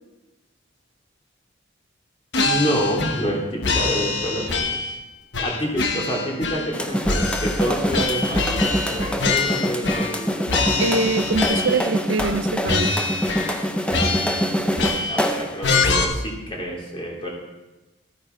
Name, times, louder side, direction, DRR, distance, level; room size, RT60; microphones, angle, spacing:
sound 1, 2.3-3.3 3.6-5.0 5.3-6.8 7.0-10.2 10.5-11.9 12.2-12.4 12.7-13.6 13.9-15.3 15.6-16.0, left 3 dB, 60° left, 1.1 m, -25 dB
voice 1, 2.4-4.8 5.4-10.5 15.1-17.3, equal, 25° left, -2 dB, 3.0 m, -28 dB
sound 2, 6.7-15.6, equal, 5° left, 0.6 m, -25 dB
voice 2, 10.8-13.0, right 3 dB, 75° right, 12 dB, 0.6 m, -24 dB
13.5 x 9.7 x 4.5 m, 1.1 s
head